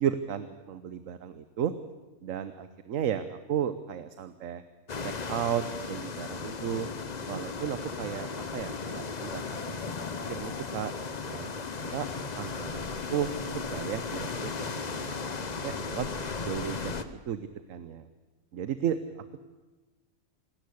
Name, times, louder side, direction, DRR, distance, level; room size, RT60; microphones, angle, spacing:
voice 1, 0.0-1.7 2.2-4.6 5.0-6.9 7.3-9.9 10.3-10.9 11.3-11.5 11.8-12.1 12.3-16.1 16.4-16.9 17.3-18.1 18.5-19.0, right 9 dB, 70° right, 11 dB, 1.2 m, -34 dB
sound 1, 4.9-17.0, left 4 dB, 35° left, 0.9 m, -36 dB
26.5 x 13.0 x 8.5 m, 1.2 s
omnidirectional pair, 1.5 m